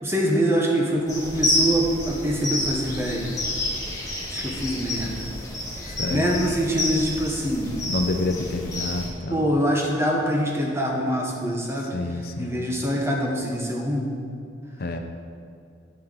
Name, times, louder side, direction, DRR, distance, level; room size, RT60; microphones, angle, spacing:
voice 1, 0.0-3.3 4.3-5.3 5.9-7.8 9.3-11.9 12.4-14.1, equal, 15° right, -1 dB, 1.3 m, -24 dB
sound 1, 1.1-9.1, left 1 dB, 20° left, 1.7 m, -29 dB
voice 2, 6.0-6.5 7.9-9.5 11.8-12.6 14.8-15.0, left 2 dB, 50° left, 5 dB, 0.6 m, -28 dB
11.5 x 4.6 x 7.5 m, 2.5 s
head